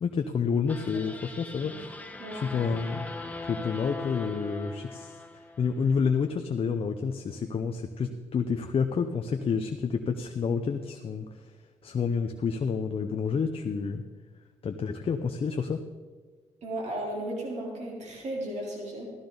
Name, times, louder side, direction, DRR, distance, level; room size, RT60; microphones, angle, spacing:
voice 1, 0.0-2.0 2.3-3.0 3.5-5.2 5.6-11.3 11.8-14.0 14.6-15.8, left 5 dB, 50° left, 6 dB, 0.7 m, -29 dB
sound 1, 0.7-6.0, left 2 dB, 10° left, 1.2 m, -40 dB
voice 2, 2.2-2.5 16.6-19.1, right 1 dB, 65° right, -3 dB, 3.7 m, -35 dB
15.5 x 13.5 x 4.0 m, 1.5 s
cardioid pair, 90°, 13 cm